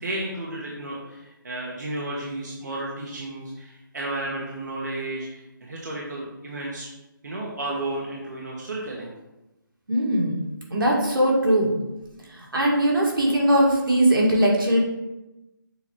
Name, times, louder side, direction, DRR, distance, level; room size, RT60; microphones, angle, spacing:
voice 1, 0.0-6.9 7.2-9.1, right 2 dB, 55° right, -3 dB, 1.2 m, -32 dB
voice 2, 9.9-10.4 10.7-11.7 12.2-14.8, right 1 dB, 80° right, -2 dB, 2.0 m, -20 dB
6.9 x 2.9 x 4.7 m, 0.97 s
hypercardioid pair, 175°, 11 cm